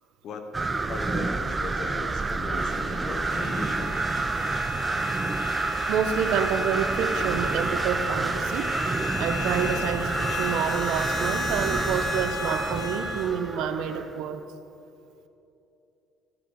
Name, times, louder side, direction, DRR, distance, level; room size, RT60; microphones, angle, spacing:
voice 1, 0.2-0.5 0.9-4.0, left 4 dB, 50° left, 5 dB, 1.2 m, -38 dB
sound 1, 0.5-14.1, right 3 dB, 15° right, 0.4 m, -29 dB
sound 2, 2.5-13.3, left 2 dB, 35° left, 2.0 m, -35 dB
sound 3, 3.3-12.9, left 2 dB, 80° left, 2.8 m, -43 dB
voice 2, 5.9-8.7 9.2-14.4, right 7 dB, 70° right, 9 dB, 0.8 m, -28 dB
13.0 x 4.9 x 8.7 m, 2.8 s
cardioid pair, 125°, 0 cm